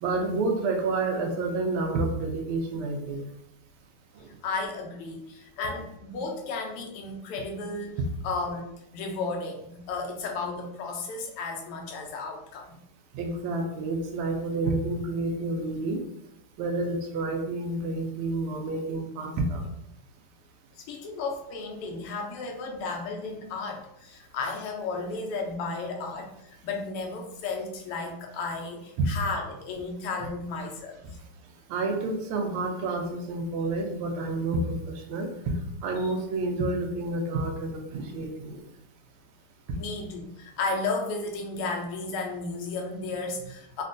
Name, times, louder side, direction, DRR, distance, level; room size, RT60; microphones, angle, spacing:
voice 1, 0.0-3.3 13.1-16.0 16.6-19.6 29.0-29.1 31.7-35.5 35.8-38.6 39.7-39.8, right 2 dB, 80° right, 3 dB, 1.4 m, -29 dB
voice 2, 4.4-12.7 20.8-31.0 36.0-36.1 39.8-43.8, left 3 dB, 85° left, 2 dB, 1.6 m, -34 dB
4.0 x 2.2 x 2.5 m, 0.81 s
omnidirectional pair, 2.4 m